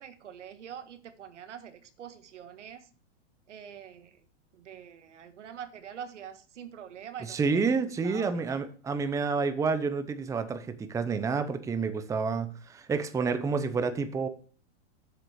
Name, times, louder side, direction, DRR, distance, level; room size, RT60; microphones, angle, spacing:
voice 1, 0.0-2.9 3.5-4.2 4.5-7.7 8.0-8.6, right 8 dB, 90° right, 10 dB, 1.4 m, -45 dB
voice 2, 7.3-14.3, right 4 dB, 10° right, 10 dB, 0.7 m, -29 dB
7.9 x 6.6 x 4.8 m, 0.41 s
hypercardioid pair, 135°, 35 cm